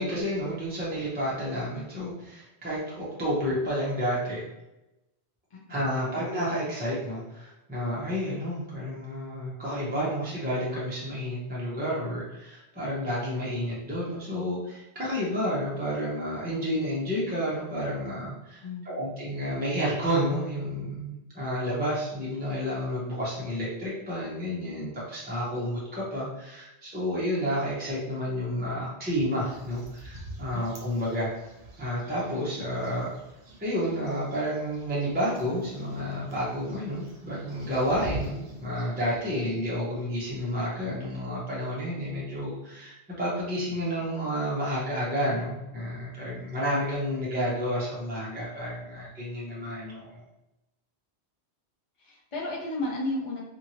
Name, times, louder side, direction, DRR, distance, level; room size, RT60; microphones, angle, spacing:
voice 1, 0.0-4.4 5.7-31.3 31.8-33.1 33.6-50.2, equal, 10° right, -7 dB, 0.6 m, -30 dB
voice 2, 18.6-19.1 30.5-30.7 52.0-53.4, left 1 dB, 50° left, -4 dB, 0.4 m, -33 dB
sound 1, 29.3-39.2, right 1 dB, 60° right, 0.9 m, -45 dB
2.8 x 2.6 x 2.8 m, 0.93 s
omnidirectional pair, 1.1 m